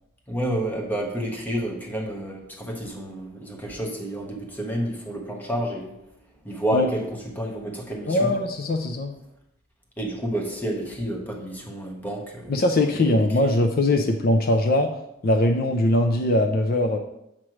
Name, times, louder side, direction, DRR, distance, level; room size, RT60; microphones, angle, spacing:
voice 1, 0.3-5.9 6.4-8.3 10.0-12.6 12.9-13.6, right 1 dB, 10° left, 0 dB, 1.1 m, -30 dB
voice 2, 8.1-9.2 12.5-14.9 15.2-17.0, left 1 dB, 50° left, 5 dB, 0.5 m, -21 dB
7.4 x 3.2 x 6.0 m, 0.82 s
head